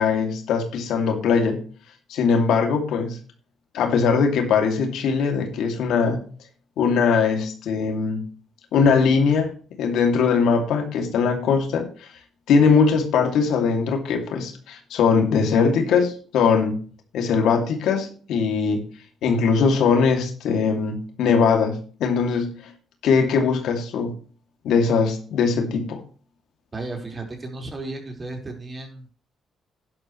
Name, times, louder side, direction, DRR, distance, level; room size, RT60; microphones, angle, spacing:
voice 1, 0.0-1.6 2.1-3.2 3.7-6.2 6.8-8.3 8.7-9.5 9.8-11.9 12.5-16.8 17.1-18.8 19.2-22.7 23.0-24.1 24.6-26.0, left 5 dB, 80° left, 4 dB, 2.6 m, -21 dB
voice 2, 26.7-29.1, right 2 dB, 30° right, 2 dB, 4.7 m, -34 dB
11.0 x 11.0 x 3.2 m, 0.40 s
cardioid pair, 90°, 0 cm